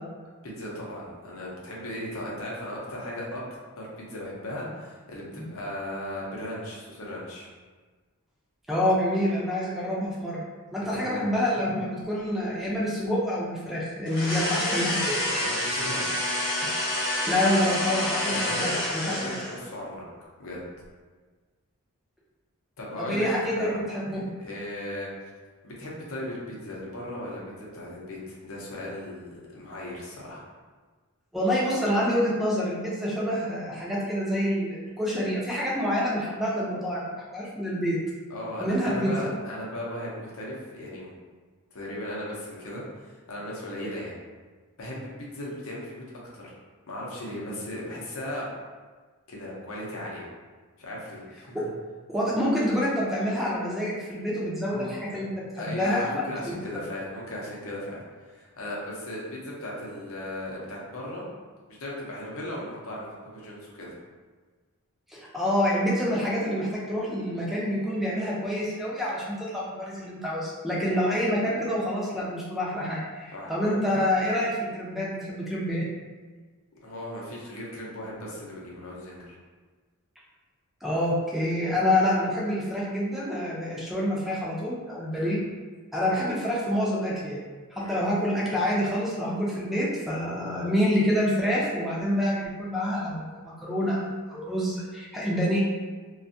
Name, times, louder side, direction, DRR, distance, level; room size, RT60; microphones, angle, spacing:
voice 1, 0.4-3.4 3.8-7.5 10.9-11.2 15.0-16.2 18.3-18.6 19.0-20.0 20.4-20.6 22.8-23.3 23.6-23.8 24.1-25.1 25.6-30.4 38.3-41.1 41.7-44.2 44.8-46.0 46.3-46.5 46.9-48.5 49.3-50.3 50.8-51.7 54.7-55.2 55.6-61.2 61.7-63.9 70.9-71.0 73.3-73.8 76.8-79.4 85.1-85.3 87.8-88.0, left 1 dB, 65° left, -4 dB, 0.7 m, -37 dB
voice 2, 8.7-10.4 10.7-15.1 16.6-16.7 17.3-19.3 23.0-24.2 31.3-37.0 37.3-38.0 38.6-39.1 51.5-51.7 52.1-56.1 56.5-56.8 65.1-75.9 80.8-85.4 85.9-87.4 87.7-95.6, equal, ahead, -6 dB, 0.4 m, -27 dB
sound 1, 14.1-19.7, left 1 dB, 45° left, 0.9 m, -28 dB
2.5 x 2.3 x 2.6 m, 1.4 s
head